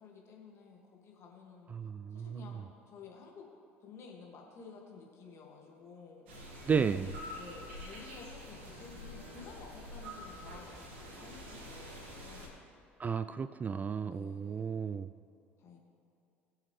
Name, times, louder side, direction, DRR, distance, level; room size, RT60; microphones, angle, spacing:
voice 1, 0.0-1.7 2.1-3.5 3.8-6.3 7.3-12.5 14.1-14.9 15.6-15.8, left 5 dB, 45° left, 0 dB, 2.3 m, -52 dB
voice 2, 1.7-2.5 6.7-7.2 13.0-15.1, right 6 dB, 25° right, 12 dB, 0.3 m, -33 dB
sound 1, 6.3-12.5, left 1 dB, 65° right, 2.4 m, -47 dB
sound 2, 8.5-11.3, left 1 dB, 80° left, 1.7 m, -58 dB
20.5 x 7.3 x 3.4 m, 2.5 s
figure-of-eight pair, 60°, 6 cm